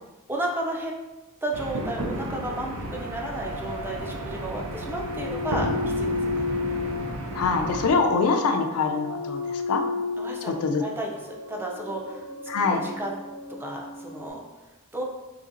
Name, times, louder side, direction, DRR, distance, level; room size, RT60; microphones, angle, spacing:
voice 1, 0.3-0.9 1.4-6.5 10.2-10.5 10.8-13.2 13.6-14.4 14.9-15.0, right 1 dB, 10° right, -1 dB, 0.4 m, -33 dB
sound 1, 1.5-7.9, right 1 dB, 70° right, 0.5 m, -33 dB
sound 2, 2.5-14.3, left 3 dB, 50° right, 1.2 m, -34 dB
voice 2, 7.3-9.8 10.5-10.8 12.5-12.8, left 4 dB, 70° left, 4 dB, 0.4 m, -24 dB
3.9 x 2.8 x 2.5 m, 1.1 s
head